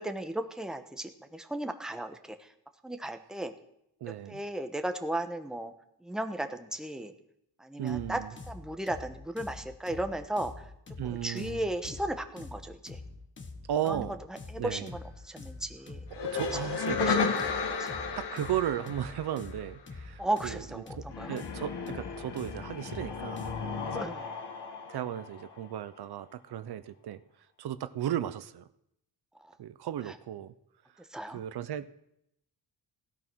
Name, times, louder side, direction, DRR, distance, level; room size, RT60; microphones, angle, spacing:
voice 1, 0.0-2.5 2.8-3.5 4.3-5.7 6.0-7.1 7.6-8.2 8.5-10.6 11.0-13.0 13.8-14.1 14.5-15.0 15.2-16.0 17.0-17.2 17.8-17.9 20.2-21.4 23.9-24.3 29.4-29.5 30.0-30.1 31.1-31.4, right 1 dB, ahead, 7 dB, 1.1 m, -35 dB
voice 2, 4.0-4.4 7.8-8.3 11.0-11.6 13.7-14.2 14.6-14.9 16.1-17.1 18.2-24.1 24.9-27.2 27.6-28.7 29.6-30.5 31.3-31.9, right 11 dB, 70° right, 13 dB, 0.8 m, -35 dB
sound 1, 7.9-23.8, left 3 dB, 30° left, 1.5 m, -45 dB
sound 2, 16.1-19.8 21.1-25.8, left 5 dB, 85° left, 2.2 m, -34 dB
16.5 x 12.5 x 6.2 m, 0.76 s
wide cardioid pair, 165°, 40 cm